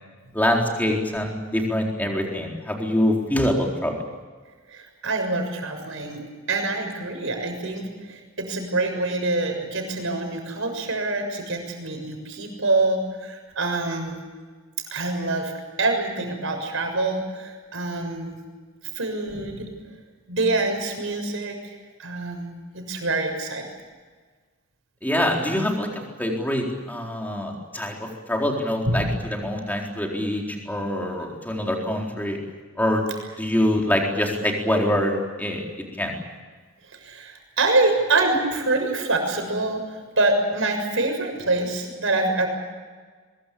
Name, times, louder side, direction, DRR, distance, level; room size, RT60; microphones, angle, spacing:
voice 1, 0.3-4.0 25.0-32.4 32.8-33.1 33.4-35.7 36.0-36.2, left 1 dB, 10° left, 0 dB, 4.2 m, -25 dB
voice 2, 4.7-14.2 14.9-15.5 15.8-18.4 18.9-19.7 20.3-21.7 22.0-23.7 28.8-29.1 37.0-42.5, right 2 dB, 60° right, 4 dB, 6.8 m, -25 dB
23.5 x 22.5 x 8.6 m, 1.4 s
head